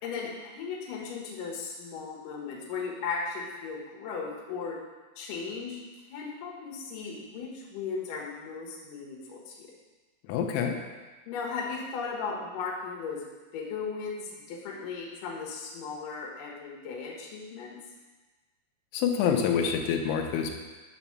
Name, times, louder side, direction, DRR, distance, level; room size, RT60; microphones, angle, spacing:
voice 1, 0.0-4.8 5.2-5.8 6.1-9.7 11.3-13.2 13.5-17.8, left 5 dB, 65° left, -3 dB, 2.4 m, -36 dB
voice 2, 10.3-10.8 18.9-20.5, left 7 dB, 85° left, 3 dB, 3.0 m, -26 dB
8.0 x 4.1 x 5.9 m, 1.3 s
omnidirectional pair, 5.3 m